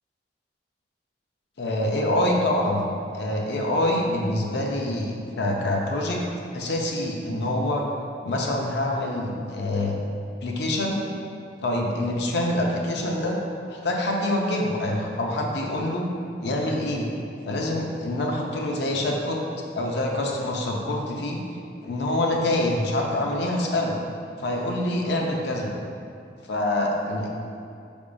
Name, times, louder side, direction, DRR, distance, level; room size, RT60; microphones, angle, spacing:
voice 1, 1.6-2.9 3.1-6.2 6.5-7.8 8.2-10.0 10.4-11.0 11.6-13.4 13.7-16.1 16.4-17.1 17.4-19.4 19.8-21.4 21.8-24.0 24.4-25.7 26.5-27.3, left 1 dB, 70° left, 0 dB, 0.5 m, -25 dB
5.0 x 3.5 x 2.5 m, 2.4 s
head